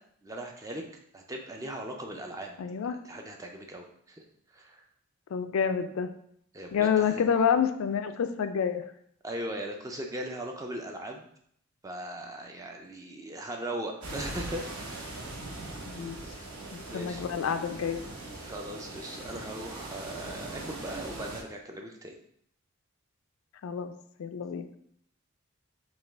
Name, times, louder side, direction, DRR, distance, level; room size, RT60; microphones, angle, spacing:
voice 1, 0.2-0.8 1.1-2.6 3.0-4.2 4.5-4.8 6.5-7.2 9.2-11.3 11.8-15.1 16.9-17.2 18.4-22.2, right 1 dB, 15° right, 2 dB, 0.4 m, -39 dB
voice 2, 2.6-3.0 5.3-6.1 6.7-8.8 15.9-16.2 16.7-18.0 23.6-23.9 24.2-24.7, left 7 dB, 70° left, 9 dB, 0.3 m, -28 dB
sound 1, 14.0-21.4, right 2 dB, 85° right, 0.9 m, -41 dB
4.8 x 2.3 x 3.4 m, 0.67 s
head